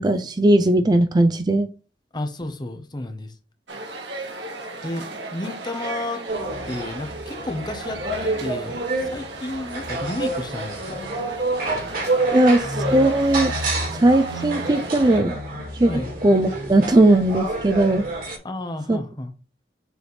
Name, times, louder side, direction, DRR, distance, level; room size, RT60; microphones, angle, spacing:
voice 1, 0.0-1.7 12.3-13.5 13.9-15.4 15.7-15.9 16.2-18.0 18.9-19.0, right 1 dB, 25° right, 0.4 m, -18 dB
voice 2, 2.1-3.3 4.8-5.0 5.3-6.2 6.7-11.0 15.9-16.1 18.4-19.3, left 1 dB, 25° left, 0.9 m, -31 dB
sound 1, 3.7-15.2, right 3 dB, 80° right, 1.6 m, -36 dB
sound 2, 6.3-18.4, right 2 dB, 55° right, 2.3 m, -28 dB
6.9 x 3.4 x 4.2 m
head